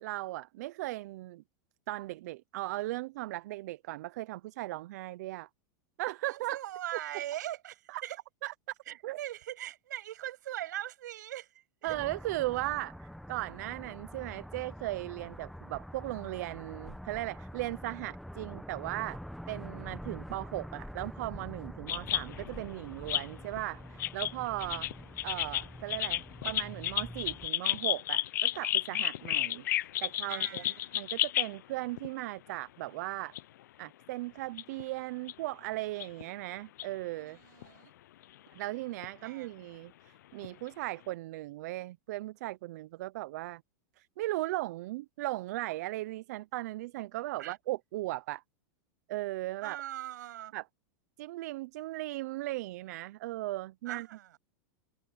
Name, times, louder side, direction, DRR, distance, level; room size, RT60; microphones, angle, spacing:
voice 1, 0.0-1.4 1.9-5.5 6.0-6.6 6.9-7.0 7.9-8.0 8.4-8.8 9.0-9.2 11.8-19.2 19.5-24.9 25.2-30.6 30.9-33.3 33.8-37.4 38.5-43.6 44.0-48.4 49.1-49.8 50.5-50.6 51.2-54.1, right 18 dB, 65° right, 0.6 m, -37 dB
voice 2, 6.2-8.2 8.9-11.5 11.9-12.0 24.7-24.8 30.3-30.9 37.2-37.9 39.2-39.5 47.4-47.6 49.6-50.5 53.9-54.4, right 13 dB, 80° right, 7.5 m, -41 dB
sound 1, 11.9-27.5, equal, ahead, 1.2 m, -46 dB
sound 2, 21.9-22.6 23.1-23.6 24.0-31.6 32.0-32.1 33.3-33.4 34.6-34.8 35.3-35.4 36.0-36.2 36.8-36.9 37.6-37.7 39.0-39.1 40.4-40.5, left 14 dB, 80° left, 0.6 m, -32 dB
supercardioid pair, 140°, 10 cm